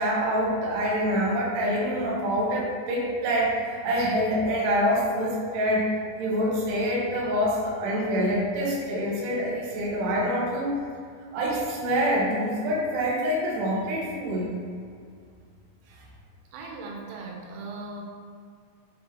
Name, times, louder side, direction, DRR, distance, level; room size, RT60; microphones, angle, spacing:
voice 1, 0.0-5.9 6.2-10.7 11.3-14.5, equal, 65° right, -4 dB, 2.1 m, -26 dB
voice 2, 16.5-18.0, right 3 dB, 90° right, 0 dB, 3.6 m, -38 dB
7.2 x 4.5 x 4.3 m, 2.2 s
omnidirectional pair, 5.5 m